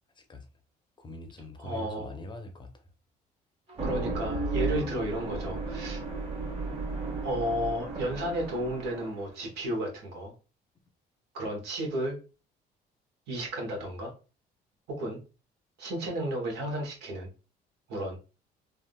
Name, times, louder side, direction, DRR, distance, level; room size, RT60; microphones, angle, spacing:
voice 1, 0.1-0.5 1.0-2.9, left 1 dB, 25° left, 0.6 m, -43 dB
voice 2, 1.6-2.1 3.8-6.0 7.2-10.3 11.3-12.2 13.3-14.1 14.9-15.2 15.8-17.3 17.9-18.2, right 1 dB, 80° right, 1.2 m, -33 dB
sound 1, 3.7-9.3, right 3 dB, 35° right, 1.3 m, -34 dB
3.5 x 2.4 x 2.3 m
cardioid pair, 110°, 17 cm